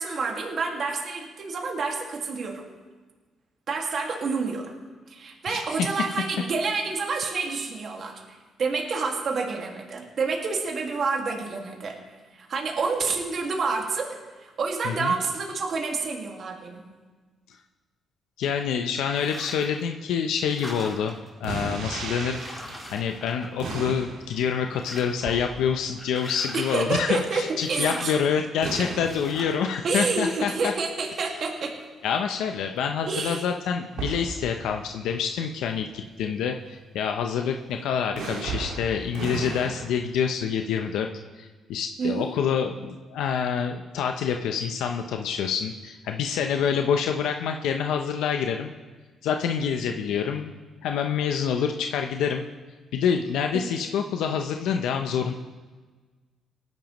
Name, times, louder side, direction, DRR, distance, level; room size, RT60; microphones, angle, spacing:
voice 1, 0.0-2.6 3.7-4.7 5.1-12.0 12.3-16.8 26.5-27.4 27.7-28.1 29.8-31.7 33.1-33.4 42.0-42.3 53.5-53.8, right 4 dB, 55° right, 0 dB, 1.9 m, -28 dB
voice 2, 5.5-5.9 14.8-15.1 18.4-21.1 21.4-22.4 22.9-30.7 32.0-41.1 41.4-48.7 49.2-50.5 50.8-52.5 52.9-55.3, left 7 dB, 85° left, 4 dB, 0.6 m, -27 dB
sound 1, 19.2-19.8 20.2-21.3 21.9-22.0 22.3-24.0 24.4-25.3 26.0-27.0 27.6-28.2 29.0-29.7, left 1 dB, 10° left, 4.7 m, -40 dB
sound 2, 21.4-27.3 28.6-30.1 33.9-35.1 35.8-36.0 38.2-39.9, right 4 dB, 85° right, 1.9 m, -36 dB
19.0 x 10.5 x 3.0 m, 1.3 s
cardioid pair, 90°, 0 cm